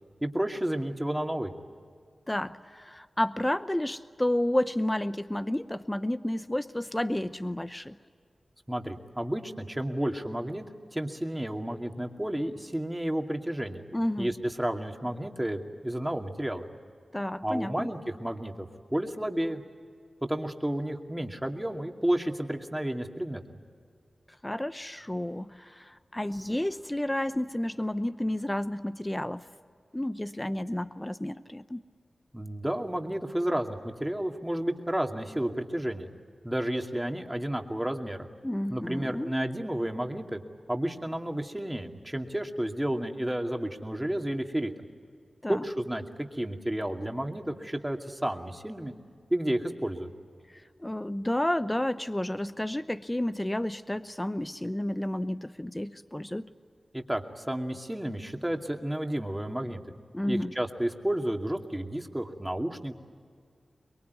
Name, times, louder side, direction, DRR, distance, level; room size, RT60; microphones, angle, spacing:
voice 1, 0.2-1.5 8.7-10.6 10.9-13.8 14.2-16.6 17.4-19.6 20.2-23.4 32.3-36.1 36.4-38.3 38.7-40.4 40.7-44.7 45.5-48.9 49.3-50.1 56.9-59.8 60.3-62.9, right 1 dB, 10° right, 4 dB, 2.4 m, -31 dB
voice 2, 2.3-7.9 13.9-14.3 17.1-17.9 24.4-29.4 29.9-31.8 38.4-39.3 45.4-45.6 50.5-56.5 60.1-60.5, left 1 dB, 15° left, 12 dB, 0.8 m, -31 dB
24.0 x 22.5 x 9.5 m, 2.1 s
cardioid pair, 55°, 0 cm